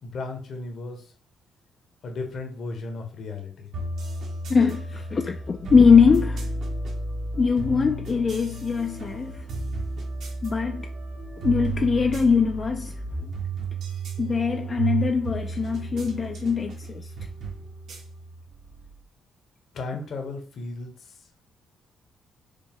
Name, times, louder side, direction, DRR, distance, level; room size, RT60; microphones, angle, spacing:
voice 1, 0.0-1.0 2.0-3.7 19.7-20.9, left 3 dB, 60° left, 1.0 m, -34 dB
sound 1, 3.7-19.0, right 2 dB, 70° right, 1.2 m, -32 dB
voice 2, 4.5-6.5 7.3-9.5 10.4-10.9 11.4-13.0 14.2-17.1, left 5 dB, 35° left, 0.3 m, -22 dB
5.0 x 2.1 x 3.6 m
cardioid pair, 90°, 0 cm